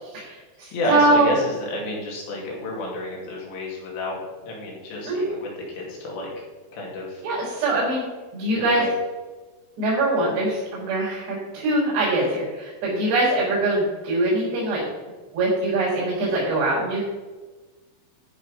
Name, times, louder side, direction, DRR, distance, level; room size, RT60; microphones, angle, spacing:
voice 1, 0.0-1.4 5.1-5.2 7.2-8.0 8.3-8.8 9.8-14.8 15.3-17.0, right 2 dB, 90° right, -8 dB, 6.4 m, -23 dB
voice 2, 0.7-6.4 6.7-7.2 8.5-8.9, left 1 dB, 85° left, -2 dB, 4.7 m, -30 dB
13.5 x 6.0 x 5.4 m, 1.3 s
omnidirectional pair, 4.8 m